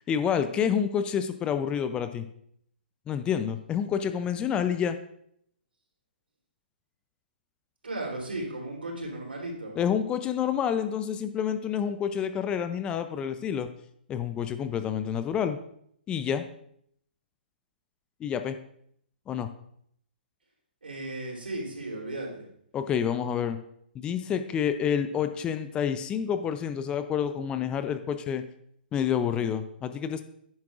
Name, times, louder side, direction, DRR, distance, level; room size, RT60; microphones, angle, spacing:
voice 1, 0.1-2.3 3.1-5.0 9.8-13.7 14.1-15.6 16.1-16.4 18.2-18.6 19.3-19.5 22.7-23.6 23.9-28.4 28.9-30.2, left 8 dB, 15° left, 10 dB, 0.4 m, -28 dB
voice 2, 7.8-9.7 20.8-22.4, right 2 dB, 75° right, -1 dB, 3.2 m, -35 dB
10.5 x 9.6 x 2.4 m, 0.69 s
figure-of-eight pair, 130°, 6 cm